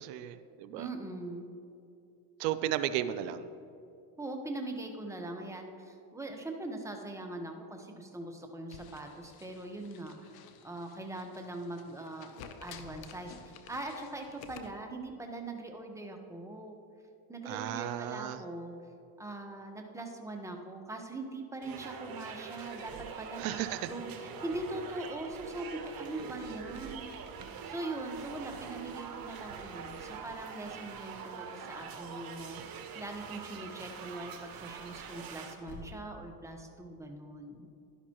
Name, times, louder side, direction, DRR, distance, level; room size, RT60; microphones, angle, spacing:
voice 1, 0.0-0.9 2.4-3.5 17.4-18.4 23.4-23.9, right 12 dB, 85° right, 12 dB, 0.6 m, -34 dB
voice 2, 0.7-1.5 4.2-10.3 10.6-12.3 12.6-16.8 17.3-18.7 19.2-27.1 27.6-37.7, right 2 dB, 5° right, 3 dB, 1.1 m, -41 dB
sound 1, 8.7-14.7, left 7 dB, 50° left, 0.9 m, -52 dB
sound 2, 21.6-35.5, right 6 dB, 45° right, 1.3 m, -44 dB
sound 3, 31.4-36.1, left 1 dB, 75° left, 2.1 m, -55 dB
11.5 x 11.0 x 3.0 m, 2.6 s
supercardioid pair, 95°, 47 cm